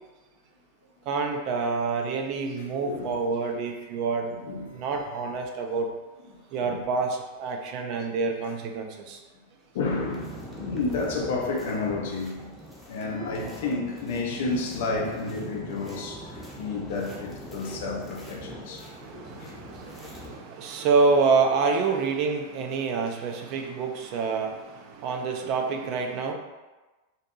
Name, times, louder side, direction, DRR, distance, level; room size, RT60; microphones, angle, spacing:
voice 1, 1.1-4.3 4.7-5.9 6.5-9.2 18.9-26.3, right 4 dB, 40° right, 3 dB, 0.3 m, -27 dB
voice 2, 2.6-3.2 4.3-5.2 6.6-6.8 7.7-7.8 9.7-12.6 12.9-19.0 19.4-19.6 19.9-20.1 24.1-24.2 25.4-25.5, left 3 dB, 55° left, 1 dB, 0.4 m, -31 dB
sound 1, 9.8-20.4, equal, ahead, 0.6 m, -42 dB
2.6 x 2.5 x 2.4 m, 1.2 s
figure-of-eight pair, 90°, 0 cm